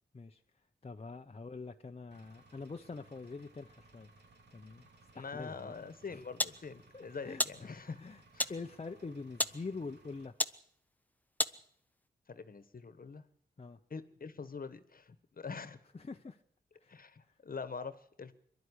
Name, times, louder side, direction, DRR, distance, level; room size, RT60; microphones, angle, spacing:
voice 1, 0.8-4.1 4.5-4.8 5.1-5.7 6.1-6.2 6.9-7.7 8.0-8.2 8.5-10.3 13.6-13.8 15.9-16.4 16.8-17.0, left 4 dB, 35° left, 5 dB, 0.9 m, -45 dB
Engine, 2.1-10.3, right 2 dB, 75° right, 3.2 m, -62 dB
voice 2, 5.1-8.0 8.3-8.5 12.3-13.2 13.9-15.8 16.9-18.3, left 5 dB, 55° left, 13 dB, 1.5 m, -44 dB
sound 1, 5.8-12.1, left 1 dB, 10° left, 0.9 m, -39 dB
23.0 x 12.0 x 9.9 m, 0.68 s
cardioid pair, 70°, 18 cm